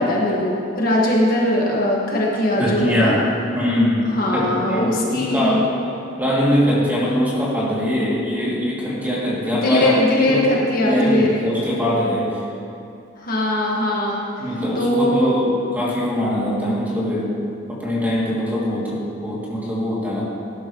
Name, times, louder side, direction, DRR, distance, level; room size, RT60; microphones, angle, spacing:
voice 1, 0.0-3.1 4.1-5.6 9.5-11.4 13.2-14.2 14.7-15.3, left 1 dB, 45° left, -4 dB, 1.7 m, -20 dB
voice 2, 2.6-3.2 3.5-5.6 6.2-9.9 10.3-10.5 10.8-12.4 14.4-17.3 17.7-20.2, equal, 10° right, -7 dB, 2.6 m, -22 dB
18.5 x 11.0 x 3.1 m, 2.6 s
head